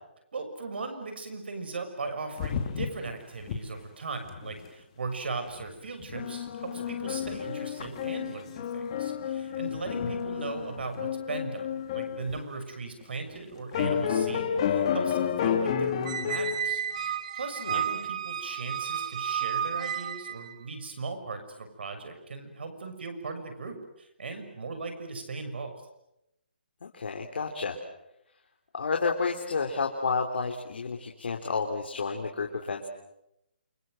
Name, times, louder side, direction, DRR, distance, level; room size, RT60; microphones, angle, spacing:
voice 1, 0.3-25.7, right 3 dB, 65° right, 7 dB, 6.6 m, -38 dB
sound 1, 2.4-3.1 3.4-3.6 3.9-4.0 4.2-4.6 5.6-5.7 6.0-12.4 13.0-13.1 13.7-16.6, left 8 dB, 30° left, 2.7 m, -31 dB
voice 2, 9.7-10.1 17.6-17.8 26.8-27.8 28.7-32.9, left 4 dB, 65° left, 2 dB, 3.6 m, -31 dB
Squeak, 16.1-20.5, right 8 dB, 35° right, 1.2 m, -32 dB
29.0 x 26.5 x 7.9 m, 0.85 s
hypercardioid pair, 170°, 6 cm